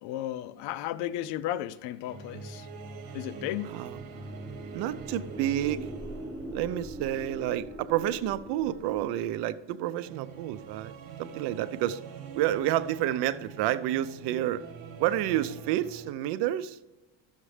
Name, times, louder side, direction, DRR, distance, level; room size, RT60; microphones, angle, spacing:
voice 1, 0.0-2.7 3.1-3.7, left 13 dB, 85° left, 0.6 m, -34 dB
sound 1, 1.5-16.1, right 5 dB, 60° right, 1.5 m, -45 dB
sound 2, 3.6-9.6, right 1 dB, ahead, 0.5 m, -43 dB
voice 2, 3.7-4.0 4.7-5.9 6.5-10.9 11.2-12.0 12.3-14.6 15.0-16.8, right 13 dB, 80° right, 0.7 m, -29 dB
12.0 x 7.4 x 3.3 m
cardioid pair, 145°, 40 cm